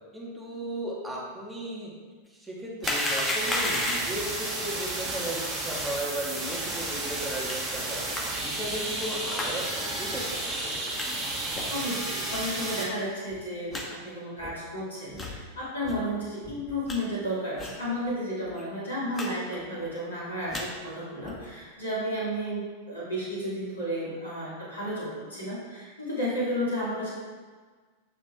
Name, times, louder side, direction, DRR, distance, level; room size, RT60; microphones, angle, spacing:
voice 1, 0.1-1.9 2.3-10.4, right 1 dB, 10° right, -5 dB, 2.1 m, -36 dB
sound 1, 2.8-4.3 7.5-7.6 8.1-8.2 9.3-9.5 10.1-10.2 10.9-11.1 11.5-11.8 12.3-12.4 13.0-13.1 13.3-13.4 13.7-13.8 14.4-14.5 15.1-15.3 15.8-16.0 16.4-17.0 17.6-17.8 18.1-18.2 18.4-18.6 19.1-19.3 19.5-19.9 20.3-20.6 21.2-21.5, left 1 dB, 15° left, 1.5 m, -32 dB
sound 2, 2.8-12.8, right 2 dB, 35° right, 2.6 m, -32 dB
voice 2, 11.7-27.1, equal, 75° left, -8 dB, 2.6 m, -32 dB
8.8 x 6.2 x 3.7 m, 1.5 s
figure-of-eight pair, 90°, 0 cm